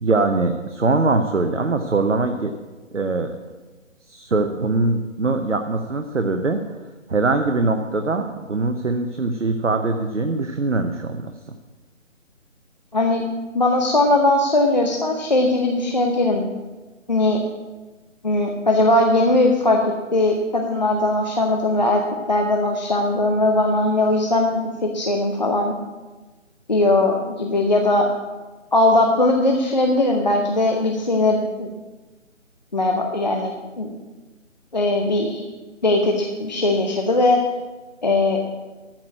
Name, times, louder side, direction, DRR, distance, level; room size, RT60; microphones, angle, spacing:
voice 1, 0.0-2.5 2.9-3.4 4.1-6.6 7.1-11.3, right 3 dB, 65° right, 6 dB, 0.9 m, -22 dB
voice 2, 12.9-13.2 13.5-16.5 17.1-17.4 18.2-22.0 22.3-25.7 26.7-28.1 28.7-31.7 32.7-33.9 34.7-35.4 35.8-37.4 38.0-38.4, left 2 dB, 35° left, 1 dB, 0.8 m, -19 dB
13.0 x 4.8 x 7.9 m, 1.2 s
figure-of-eight pair, 155°, 38 cm